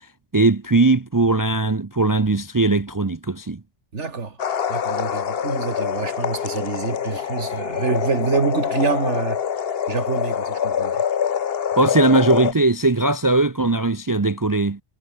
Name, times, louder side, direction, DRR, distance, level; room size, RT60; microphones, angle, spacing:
voice 1, 0.3-3.6 11.8-14.8, right 2 dB, 25° right, 0.5 m, -19 dB
voice 2, 3.9-4.4 4.7-9.4 9.9-11.0, right 4 dB, 90° right, 2.4 m, -26 dB
sound 1, 4.4-12.5, left 8 dB, 60° left, 1.1 m, -25 dB
omnidirectional pair, 1.2 m